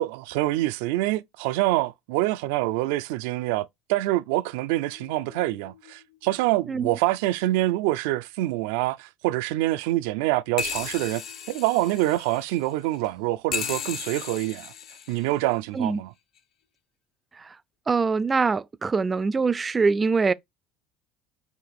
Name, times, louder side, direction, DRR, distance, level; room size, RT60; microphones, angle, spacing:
voice 1, 0.0-11.2 11.5-14.7 15.1-16.1, right 17 dB, 85° right, 0.4 m, -26 dB
sound 1, 4.9-5.9 6.4-6.5 6.7-6.8 10.6-13.1 13.5-15.5 16.4-16.5, left 7 dB, 55° left, 0.8 m, -36 dB
voice 2, 17.9-20.3, right 4 dB, 25° right, 0.4 m, -23 dB
5.9 x 2.6 x 3.4 m
supercardioid pair, 110°, 0 cm